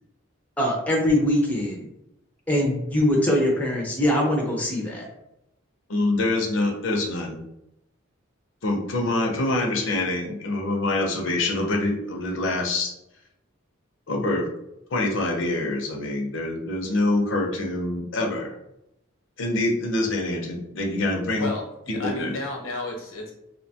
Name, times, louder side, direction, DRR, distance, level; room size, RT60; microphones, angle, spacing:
voice 1, 0.6-1.9 2.5-5.1, left 1 dB, 10° left, -1 dB, 0.4 m, -22 dB
voice 2, 5.9-7.4 8.6-12.9 14.1-14.5 14.9-18.5 19.4-21.5 21.9-22.4, left 2 dB, 65° left, 1 dB, 0.6 m, -25 dB
voice 3, 21.4-23.3, left 2 dB, 90° left, -2 dB, 0.9 m, -32 dB
2.7 x 2.2 x 2.7 m, 0.84 s
head